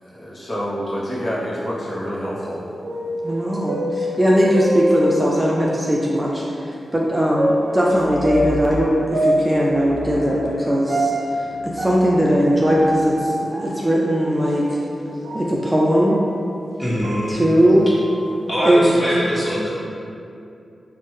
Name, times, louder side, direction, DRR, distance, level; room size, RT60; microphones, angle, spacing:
voice 1, 0.0-2.6, equal, 40° left, -8 dB, 0.7 m, -27 dB
sound 1, 1.2-5.8 6.3-6.4 7.3-16.4 16.8-18.7, equal, 80° right, 0.5 m, -26 dB
voice 2, 3.2-14.8 15.3-16.2 17.3-17.9 18.6-18.9, equal, 20° right, -4 dB, 0.4 m, -19 dB
sound 2, 7.8-9.2 9.7-15.2 16.7-17.1, right 1 dB, 90° left, 0.6 m, -37 dB
voice 3, 16.8-17.4 18.5-19.7, equal, 10° left, -9 dB, 1.2 m, -22 dB
3.0 x 2.1 x 3.0 m, 2.6 s
cardioid pair, 45°, 0 cm